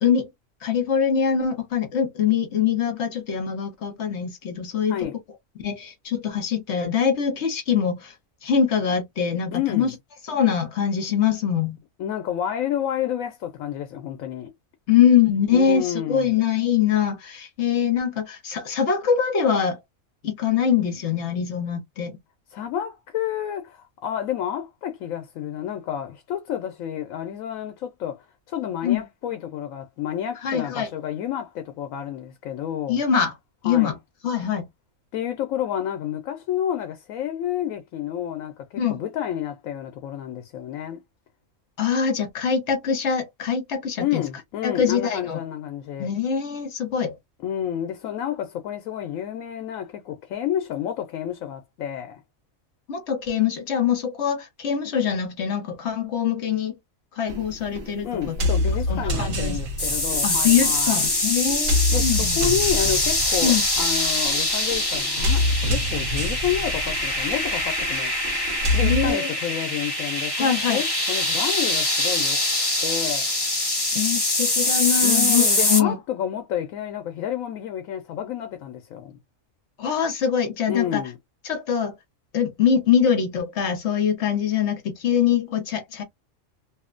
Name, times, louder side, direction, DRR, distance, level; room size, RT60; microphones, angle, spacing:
voice 1, 0.6-5.1 5.6-8.1 8.4-9.9 10.2-11.8 14.9-19.8 20.2-22.2 28.8-29.0 30.4-30.9 32.9-33.3 33.6-33.9 34.2-34.7 38.8-39.0 41.8-44.2 44.6-45.4 46.0-47.2 52.9-56.7 57.1-58.4 58.9-59.6 60.2-62.4 63.4-63.6 68.8-69.3 70.4-70.8 73.9-76.0 79.8-81.0 81.4-81.9 82.3-86.0, left 7 dB, 60° left, 1.0 m, -23 dB
voice 2, 9.5-9.9 12.0-14.5 15.5-16.4 22.5-33.0 33.6-33.9 35.1-41.0 44.0-46.1 47.4-52.2 58.0-61.0 61.9-72.4 72.8-73.3 75.0-79.2 80.7-81.2, left 10 dB, 90° left, 1.0 m, -30 dB
sound 1, 57.3-69.1, left 1 dB, 75° right, 1.2 m, -27 dB
sound 2, 59.8-75.8, left 1 dB, 20° left, 1.0 m, -24 dB
2.9 x 2.1 x 2.4 m
omnidirectional pair, 1.4 m